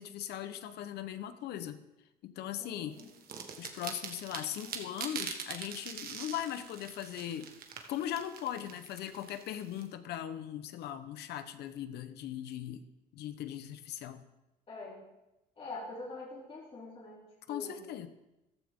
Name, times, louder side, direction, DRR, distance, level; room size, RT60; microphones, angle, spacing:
voice 1, 0.0-1.8 2.2-3.0 3.6-7.5 7.9-12.9 13.1-14.2 17.5-18.1, left 11 dB, 75° left, 11 dB, 1.0 m, -39 dB
voice 2, 2.6-3.1 14.7-15.0 15.6-17.8, left 2 dB, 35° left, -5 dB, 3.3 m, -44 dB
sound 1, 3.0-9.8, right 7 dB, 60° right, 1.6 m, -43 dB
14.5 x 13.0 x 3.7 m, 0.95 s
cardioid pair, 110°, 17 cm